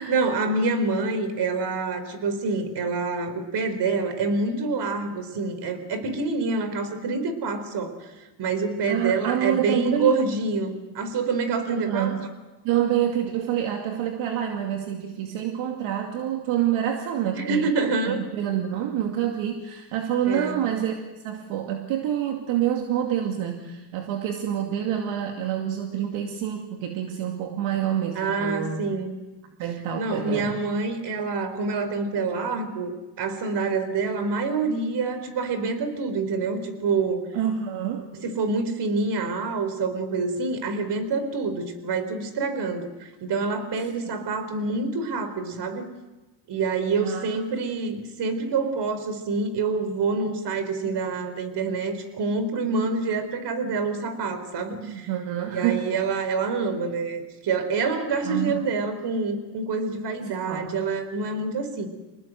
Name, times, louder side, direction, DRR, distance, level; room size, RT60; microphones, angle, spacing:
voice 1, 0.1-8.1 8.4-12.1 17.3-18.2 20.2-20.6 28.1-29.1 29.9-37.3 38.2-45.9 46.5-55.1 55.5-61.9, right 4 dB, 55° right, 10 dB, 4.6 m, -27 dB
voice 2, 8.9-10.1 11.7-12.4 12.6-17.7 18.1-21.0 21.2-28.8 29.6-30.6 37.3-38.2 47.0-47.3 54.8-55.9 58.2-58.5 60.2-60.7, right 10 dB, 75° right, 3 dB, 2.5 m, -27 dB
26.0 x 19.5 x 7.9 m, 1.1 s
supercardioid pair, 90°, 48 cm